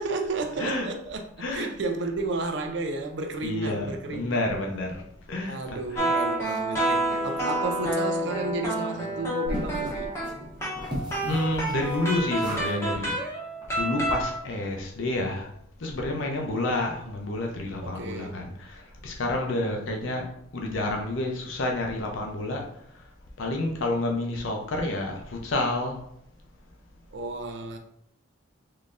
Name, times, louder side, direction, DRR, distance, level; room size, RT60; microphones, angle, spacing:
voice 1, 0.0-4.4 5.4-10.1 17.8-18.4 27.1-27.8, right 3 dB, 60° right, 0.5 m, -32 dB
voice 2, 3.4-5.0 5.3-6.1 11.2-13.1 13.7-15.5 15.8-20.3 20.5-23.0 23.4-26.0, left 2 dB, 70° left, 0.6 m, -29 dB
sound 1, 5.9-14.4, right 1 dB, 15° left, 0.8 m, -29 dB
sound 2, 9.4-12.8 13.0-13.2 13.6-13.7 14.0-14.1, equal, 20° right, 0.7 m, -36 dB
3.7 x 3.2 x 2.5 m
head